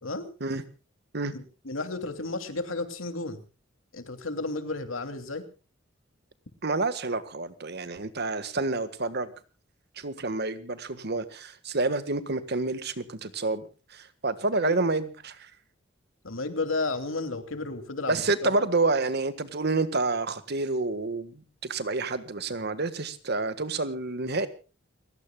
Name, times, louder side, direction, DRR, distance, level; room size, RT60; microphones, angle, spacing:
voice 1, 1.3-3.4 3.9-5.4 14.6-14.8 16.2-18.7, left 3 dB, 85° left, 2.8 m, -33 dB
voice 2, 6.6-9.3 10.0-13.7 13.9-15.5 18.1-24.5, right 3 dB, 55° right, 1.6 m, -28 dB
30.0 x 16.5 x 2.3 m
head